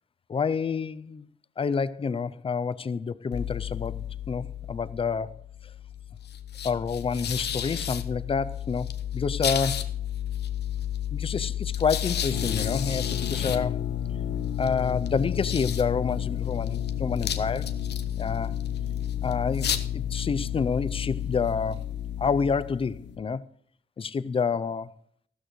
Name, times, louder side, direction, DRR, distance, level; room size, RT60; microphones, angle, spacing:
voice 1, 0.3-1.3 1.6-5.4 6.6-9.9 11.1-13.8 14.6-17.7 18.2-18.6 19.2-21.8 22.2-23.4 24.0-24.9, left 5 dB, 30° left, 0.5 m, -28 dB
sound 1, 3.3-23.2, left 10 dB, 70° left, 0.9 m, -32 dB
sound 2, 12.3-23.2, left 8 dB, 90° left, 1.3 m, -36 dB
14.5 x 13.0 x 3.1 m
wide cardioid pair, 125°, 18 cm